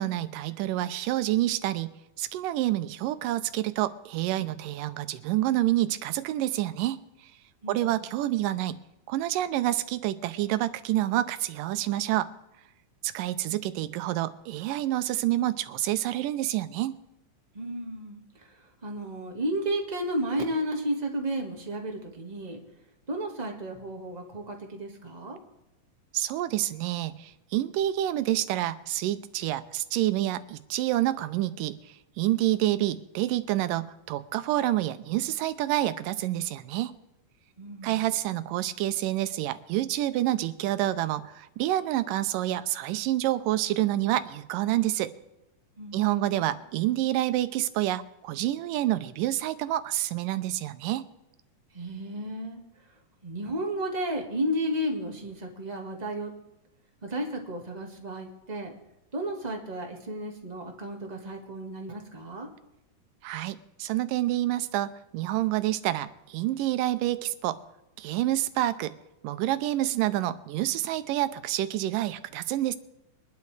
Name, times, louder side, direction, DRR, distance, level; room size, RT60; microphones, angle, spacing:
voice 1, 0.0-7.0 7.7-8.8 9.1-12.3 13.0-17.0 26.1-36.9 37.8-45.1 45.9-51.1 63.2-67.6 68.0-69.0 69.2-72.8, right 14 dB, 85° right, 13 dB, 2.3 m, -28 dB
voice 2, 7.6-8.0 17.5-22.6 23.1-25.4 37.6-38.1 45.8-46.6 51.7-52.6 53.2-56.3 57.0-58.7 59.1-62.5, right 1 dB, 30° right, 1 dB, 0.7 m, -33 dB
23.5 x 11.5 x 3.3 m, 0.91 s
omnidirectional pair, 3.8 m